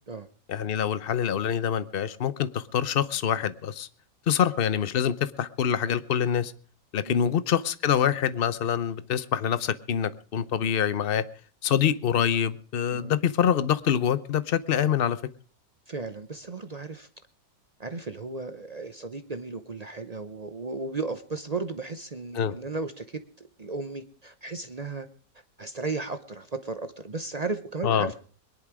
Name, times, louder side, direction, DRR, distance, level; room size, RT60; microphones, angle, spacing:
voice 1, 0.5-3.9 4.3-6.5 6.9-11.2 11.6-15.2 22.3-22.6 27.8-28.1, left 8 dB, 50° left, 0.7 m, -25 dB
voice 2, 7.0-7.3 12.9-13.1 15.9-17.1 17.8-25.1 25.6-28.1, right 3 dB, 45° right, 0.5 m, -35 dB
22.0 x 10.5 x 4.8 m
omnidirectional pair, 1.9 m